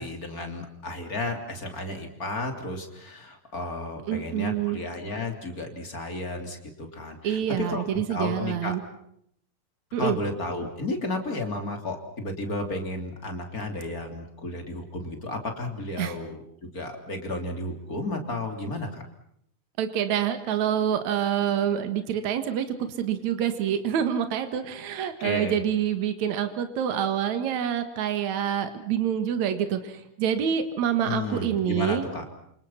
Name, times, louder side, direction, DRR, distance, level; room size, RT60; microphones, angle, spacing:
voice 1, 0.0-8.8 10.0-19.0 25.2-25.6 31.0-32.2, left 2 dB, 30° left, 4 dB, 3.6 m, -33 dB
voice 2, 4.1-4.8 7.2-8.8 9.9-10.2 16.0-16.2 19.8-32.1, right 9 dB, 70° right, 9 dB, 3.0 m, -27 dB
28.5 x 27.0 x 5.8 m, 0.70 s
omnidirectional pair, 3.4 m